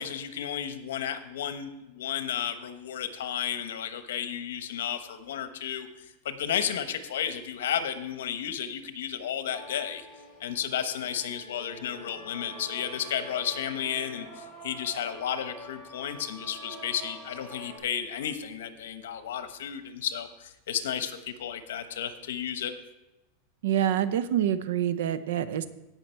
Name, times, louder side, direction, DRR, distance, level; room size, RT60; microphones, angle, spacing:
voice 1, 0.0-10.0 10.4-22.7, left 9 dB, 90° left, 10 dB, 1.0 m, -33 dB
sound 1, 9.5-17.8, left 1 dB, 5° right, 3.5 m, -45 dB
voice 2, 23.6-25.7, right 10 dB, 75° right, 14 dB, 0.7 m, -26 dB
17.0 x 5.8 x 4.5 m, 0.98 s
supercardioid pair, 150°, 0 cm